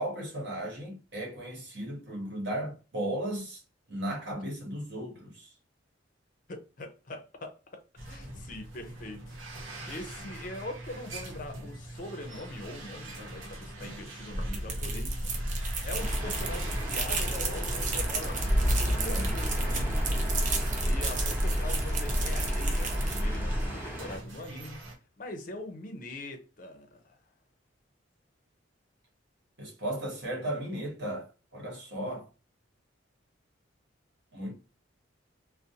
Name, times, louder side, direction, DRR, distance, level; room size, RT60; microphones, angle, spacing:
voice 1, 0.0-3.6 3.9-5.5 29.6-32.3 34.3-34.5, right 1 dB, 60° right, 1.2 m, -35 dB
voice 2, 6.5-9.6 9.9-15.3 15.5-20.3 20.8-24.8 25.2-27.2, left 2 dB, 45° left, 0.5 m, -42 dB
sound 1, 8.0-21.0 21.4-21.6 22.4-22.5 23.5-25.0, right 1 dB, 90° right, 0.8 m, -44 dB
sound 2, 14.3-23.7, right 1 dB, 40° right, 0.5 m, -29 dB
sound 3, 16.0-24.2, right 1 dB, 10° right, 0.9 m, -37 dB
2.5 x 2.0 x 2.7 m
head